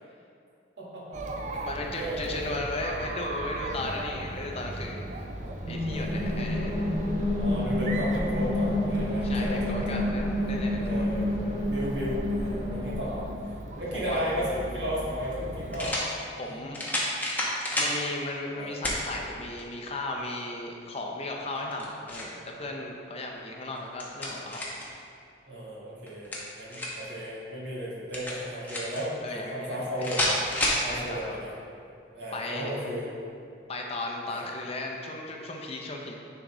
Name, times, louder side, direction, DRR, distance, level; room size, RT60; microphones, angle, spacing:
voice 1, 0.8-2.6 5.9-6.8 7.2-10.1 10.7-13.2 13.7-16.0 16.4-16.6 18.5-18.7 25.4-30.4 30.8-31.5 32.1-33.1 34.3-34.4, equal, 65° right, -6 dB, 1.5 m, -35 dB
Chatter, 1.1-15.9, right 2 dB, 40° right, 0.4 m, -39 dB
voice 2, 1.6-5.1 5.7-6.9 9.2-11.0 13.9-14.2 16.4-16.9 17.8-24.6 29.2-30.1 30.9-31.4 32.3-32.7 33.7-36.2, left 2 dB, 35° left, 0 dB, 0.6 m, -36 dB
sound 1, 5.6-13.4, left 1 dB, 25° right, 1.3 m, -29 dB
sound 2, 14.5-14.6 15.7-16.1 16.7-18.0 18.8-19.0 19.6-19.7 21.5-22.4 23.7-24.9 26.1-27.1 28.1-29.0 30.0-30.8, left 1 dB, 10° left, 0.8 m, -29 dB
9.7 x 3.9 x 3.0 m, 2.4 s
head